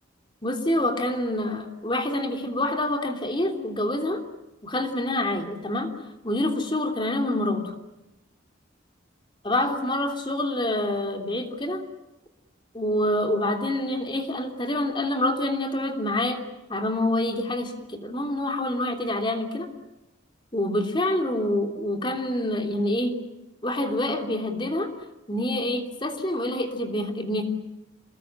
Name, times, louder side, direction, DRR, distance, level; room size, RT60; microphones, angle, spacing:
voice 1, 0.4-4.2 4.6-5.9 6.2-7.6 9.4-11.8 12.7-16.4 16.7-19.7 20.5-23.2 23.6-24.9 25.3-27.4, left 1 dB, 25° left, 5 dB, 3.2 m, -26 dB
28.0 x 21.0 x 9.0 m, 0.96 s
head